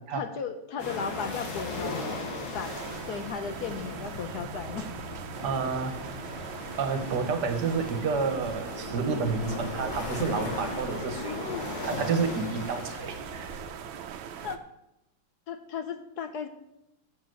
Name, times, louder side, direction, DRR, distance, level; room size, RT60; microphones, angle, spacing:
voice 1, 0.1-2.0 2.5-2.8 3.1-4.9 11.2-11.7 14.4-14.6 15.5-16.5, left 6 dB, 60° left, 9 dB, 1.2 m, -35 dB
sound 1, 0.8-13.7, left 2 dB, 85° left, 2.8 m, -37 dB
sound 2, 2.6-14.6, right 8 dB, 90° right, 1.6 m, -41 dB
voice 2, 5.4-6.0 6.8-11.4 11.8-13.6, right 5 dB, 60° right, 7 dB, 1.7 m, -30 dB
7.7 x 7.1 x 7.7 m, 0.85 s
omnidirectional pair, 2.2 m